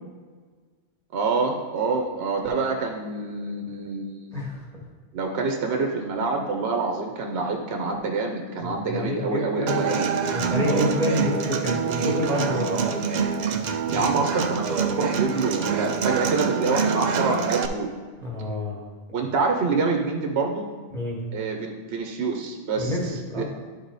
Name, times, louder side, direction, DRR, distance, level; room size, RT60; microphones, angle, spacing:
voice 1, 1.1-4.3 5.1-10.1 13.9-17.9 19.1-20.7 21.3-23.4, right 4 dB, 70° right, 3 dB, 1.0 m, -26 dB
voice 2, 8.6-9.9 10.3-13.0 13.8-14.1 18.2-18.8 20.9-21.2 22.7-23.4, left 1 dB, ahead, -5 dB, 1.9 m, -28 dB
Human voice / Acoustic guitar, 9.7-17.7, right 6 dB, 50° right, 0.6 m, -25 dB
11.0 x 3.9 x 4.1 m, 1.5 s
omnidirectional pair, 1.1 m